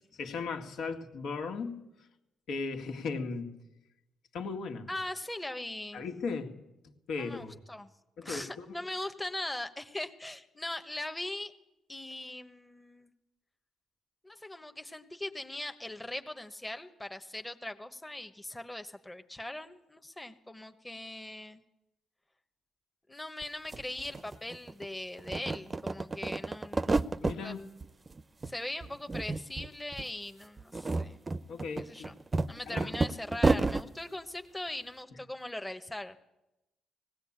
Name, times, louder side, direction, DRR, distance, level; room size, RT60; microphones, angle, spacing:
voice 1, 0.2-1.8 2.5-3.6 4.3-4.9 5.9-6.6 7.1-7.6 8.2-8.7 27.2-27.6 31.5-32.1 32.7-32.9, left 4 dB, 75° left, 3 dB, 2.1 m, -37 dB
voice 2, 4.9-6.0 7.1-7.9 8.2-11.5 11.9-13.1 14.2-21.6 23.1-27.0 27.3-27.6 28.5-31.2 31.8-32.2 32.5-36.2, left 1 dB, 10° left, 7 dB, 1.1 m, -40 dB
sound 1, 23.4-23.5 23.7-24.9 25.2-27.4 27.8-28.5 28.8-29.7 29.9-30.1 30.6-33.9, right 3 dB, 25° right, 0.6 m, -30 dB
18.5 x 17.0 x 8.8 m, 0.96 s
cardioid pair, 90°, 0 cm